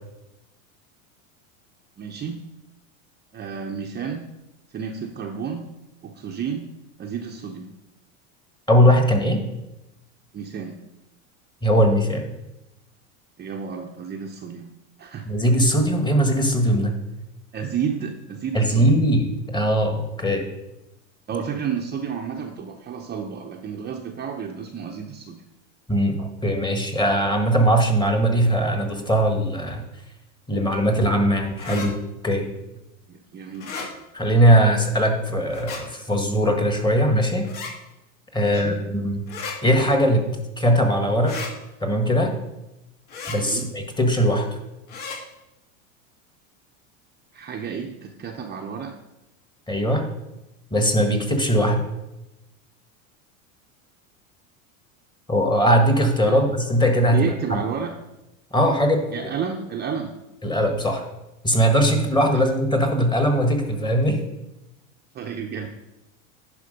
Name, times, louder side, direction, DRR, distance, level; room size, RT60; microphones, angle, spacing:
voice 1, 2.0-2.4 3.3-4.2 4.7-5.7 6.0-6.7 7.0-7.7 10.3-10.8 13.4-14.7 15.0-15.3 17.5-19.0 21.3-25.4 33.1-33.7 38.3-38.8 43.4-43.7 47.3-49.0 56.3-56.4 57.0-57.9 59.1-60.1 62.3-62.4 65.1-65.7, right 7 dB, 25° right, 2 dB, 0.7 m, -31 dB
voice 2, 8.7-9.5 11.6-12.3 15.2-17.0 18.5-20.5 25.9-29.8 30.5-32.0 32.2-32.5 34.1-37.5 38.3-39.2 39.6-40.3 40.6-41.4 41.8-42.3 43.3-44.5 49.7-50.1 50.7-51.8 55.3-57.6 58.5-59.0 60.4-61.0 61.4-64.2, equal, 10° left, 4 dB, 1.4 m, -20 dB
sound 1, 31.6-31.9 33.5-33.9 35.5-35.8 37.4-37.7 39.3-39.6 41.2-41.5 43.1-43.4 44.9-45.2, left 5 dB, 55° left, 2.5 m, -33 dB
10.5 x 5.1 x 5.1 m, 0.94 s
supercardioid pair, 115°, 41 cm